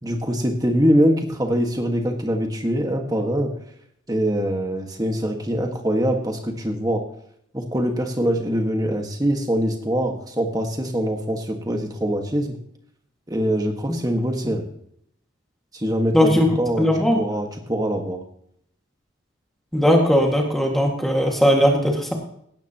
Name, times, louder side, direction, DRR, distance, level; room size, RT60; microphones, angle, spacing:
voice 1, 0.0-3.5 4.1-7.0 7.5-12.6 13.3-14.6 15.7-16.9 17.1-18.2, equal, 20° right, 3 dB, 1.6 m, -23 dB
voice 2, 16.1-16.5 16.8-17.2 19.7-22.1, equal, ahead, 0 dB, 1.9 m, -18 dB
17.0 x 12.0 x 3.0 m, 0.69 s
head